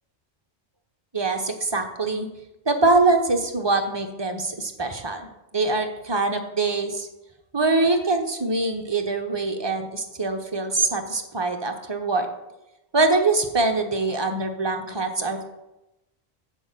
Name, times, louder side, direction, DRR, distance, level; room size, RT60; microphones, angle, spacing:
voice 1, 1.1-2.3 2.7-5.3 5.5-7.1 7.5-12.3 12.9-15.5, right 3 dB, 25° right, 4 dB, 0.9 m, -23 dB
6.3 x 6.3 x 7.4 m, 0.95 s
omnidirectional pair, 1.1 m